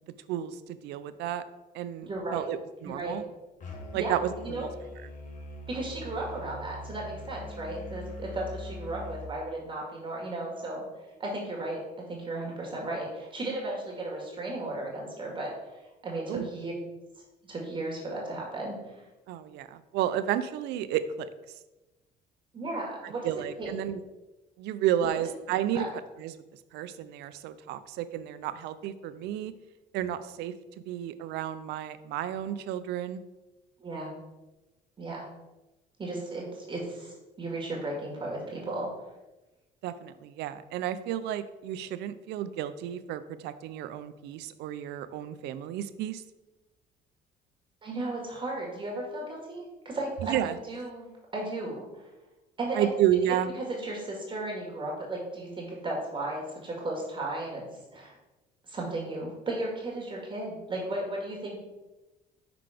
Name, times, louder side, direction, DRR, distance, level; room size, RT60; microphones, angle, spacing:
voice 1, 0.3-1.4 1.7-3.3 3.9-4.7 16.3-16.4 19.3-21.3 23.2-24.0 24.6-25.9 26.2-26.3 26.7-29.5 29.9-30.5 30.9-33.2 39.8-46.2 50.2-50.6 52.7-53.5, right 11 dB, 85° right, 13 dB, 0.5 m, -31 dB
voice 2, 2.0-2.5 2.8-3.2 3.9-4.6 5.7-10.8 11.2-15.5 16.0-16.7 17.4-19.0 22.5-23.3 23.6-23.8 25.1-25.3 25.7-25.9 33.8-34.1 35.0-35.2 36.0-38.9 47.8-52.1 52.6-52.9 53.6-57.7 57.9-58.2 58.6-61.6, right 2 dB, 30° right, -2 dB, 1.9 m, -35 dB
Musical instrument, 3.6-9.3, left 2 dB, 50° left, 1.3 m, -42 dB
5.7 x 4.0 x 4.9 m, 1.0 s
cardioid pair, 110°, 17 cm